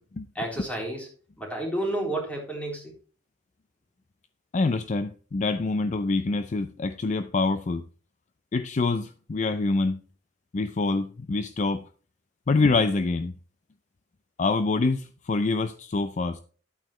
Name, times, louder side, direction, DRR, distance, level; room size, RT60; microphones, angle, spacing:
voice 1, 0.4-1.1 1.4-2.9, right 1 dB, 10° left, 3.6 m, -30 dB
voice 2, 4.5-7.8 8.5-10.0 10.5-11.9 12.5-13.3 14.4-16.4, left 3 dB, 40° left, 0.4 m, -25 dB
11.0 x 8.7 x 3.1 m
head